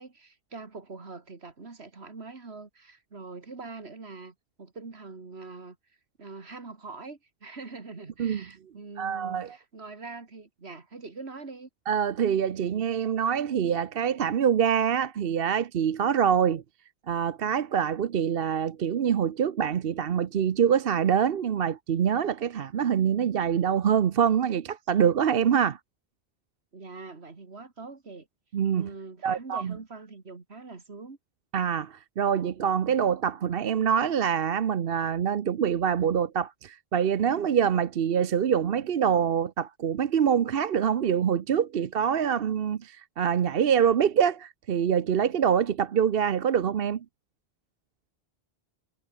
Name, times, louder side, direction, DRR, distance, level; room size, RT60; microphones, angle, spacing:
voice 1, 0.0-5.8 6.2-11.7 26.7-28.3 28.7-31.2, right 4 dB, 80° right, 2.6 m, -43 dB
voice 2, 9.0-9.6 11.9-16.6 17.1-25.8 28.5-28.9 29.2-29.8 31.5-47.0, right 8 dB, 65° right, 1.0 m, -25 dB
omnidirectional pair, 1.1 m